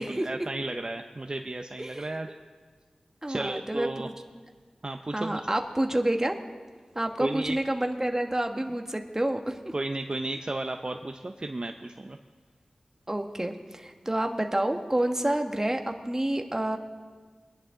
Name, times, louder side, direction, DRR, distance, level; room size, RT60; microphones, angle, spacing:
voice 1, 0.0-2.3 3.3-4.1 4.8-5.4 7.2-7.6 9.7-12.2, right 2 dB, 40° right, 5 dB, 0.6 m, -33 dB
voice 2, 1.8-2.1 3.2-4.1 5.1-6.4 6.9-9.6 13.1-16.8, right 1 dB, 20° right, 4 dB, 1.3 m, -28 dB
22.5 x 10.5 x 3.8 m, 1.5 s
wide cardioid pair, 45°, 2 cm